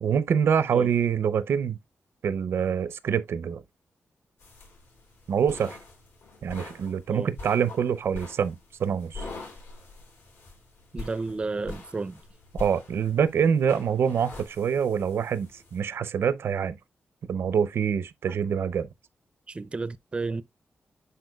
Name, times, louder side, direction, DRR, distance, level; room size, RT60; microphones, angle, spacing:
voice 1, 0.0-1.8 2.2-3.6 5.3-5.8 6.4-8.5 8.8-9.3 12.5-16.8 17.3-18.9, right 7 dB, 85° right, 0.6 m, -25 dB
sound 1, 4.4-15.8, left 3 dB, 85° left, 4.9 m, -44 dB
voice 2, 10.9-12.2 19.5-20.4, right 3 dB, 25° right, 0.4 m, -32 dB
10.0 x 4.4 x 2.3 m
wide cardioid pair, 130°, 4 cm